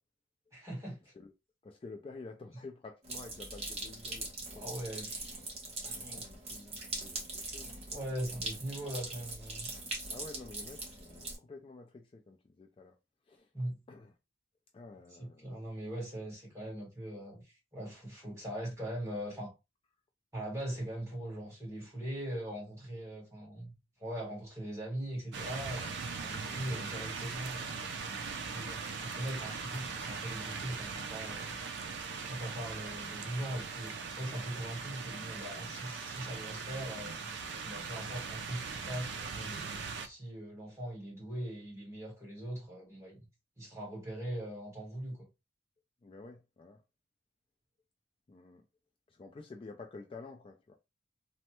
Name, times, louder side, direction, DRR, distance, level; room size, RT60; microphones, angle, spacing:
voice 1, 0.5-1.1 4.5-5.4 6.0-6.2 7.9-9.8 13.5-13.8 15.2-19.5 20.3-27.8 28.5-31.6 32.2-37.2 37.6-43.3 43.6-45.2, right 1 dB, 15° right, 1.5 m, -41 dB
voice 2, 1.6-4.3 4.5-4.8 5.8-7.8 10.1-12.9 13.3-13.5 13.9-14.1 14.7-15.6 26.3-26.6 46.0-46.8 48.3-48.6 49.1-50.8, left 3 dB, 30° left, 0.3 m, -50 dB
sound 1, 3.0-11.4, right 2 dB, 35° right, 0.9 m, -42 dB
sound 2, 25.3-40.1, right 5 dB, 65° right, 0.4 m, -40 dB
3.1 x 2.1 x 2.9 m
head